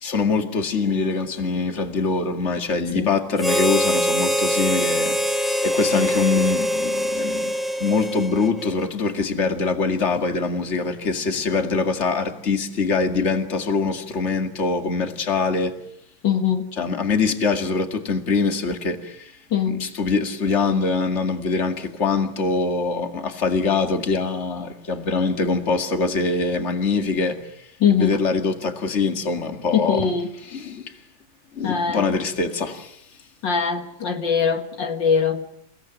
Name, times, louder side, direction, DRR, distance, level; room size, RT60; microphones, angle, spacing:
voice 1, 0.0-7.5 7.8-15.7 16.8-19.3 19.7-27.5 27.9-30.1 30.5-30.9 31.5-33.0, left 4 dB, 35° left, 2.4 m, -23 dB
Harmonica, 3.4-8.9, equal, ahead, 1.4 m, -23 dB
voice 2, 16.2-16.7 19.5-19.9 27.8-28.2 29.7-30.3 31.6-32.2 33.4-35.5, left 7 dB, 70° left, 2.4 m, -22 dB
29.5 x 17.5 x 9.2 m
omnidirectional pair, 2.1 m